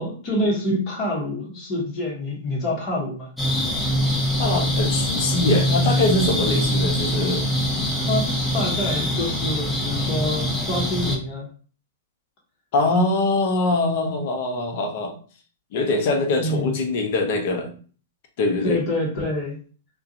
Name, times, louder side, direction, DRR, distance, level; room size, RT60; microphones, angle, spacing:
voice 1, 0.0-3.3 8.0-11.5 16.4-16.8 18.6-19.6, left 1 dB, 35° left, -4 dB, 1.0 m, -26 dB
sound 1, 3.4-11.2, equal, 10° left, 0.7 m, -23 dB
voice 2, 4.4-7.4 12.7-15.1 15.7-17.7 18.4-18.8, left 2 dB, 55° left, 4 dB, 0.6 m, -23 dB
2.4 x 2.2 x 2.7 m, 0.41 s
hypercardioid pair, 110°, 0 cm